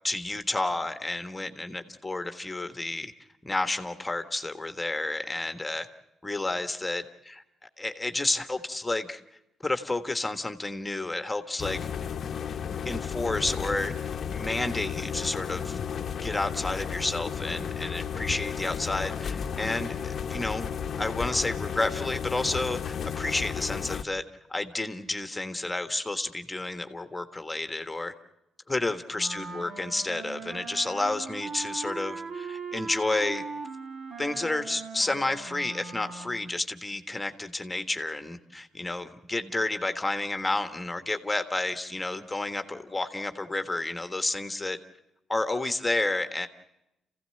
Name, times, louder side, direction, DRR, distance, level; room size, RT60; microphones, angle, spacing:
voice 1, 0.0-3.1 3.4-5.9 6.2-7.4 7.8-9.2 9.6-11.9 12.8-13.9 14.3-15.8 16.2-24.2 24.5-28.1 28.7-33.4 34.2-44.8 45.3-46.5, left 2 dB, 15° left, 8 dB, 1.5 m, -30 dB
sound 1, 11.6-24.0, left 7 dB, 50° left, 0.8 m, -33 dB
Wind instrument woodwind instrument, 29.1-36.5, right 4 dB, 60° right, 2.0 m, -39 dB
28.0 x 16.0 x 7.7 m, 0.89 s
cardioid pair, 90°, 0 cm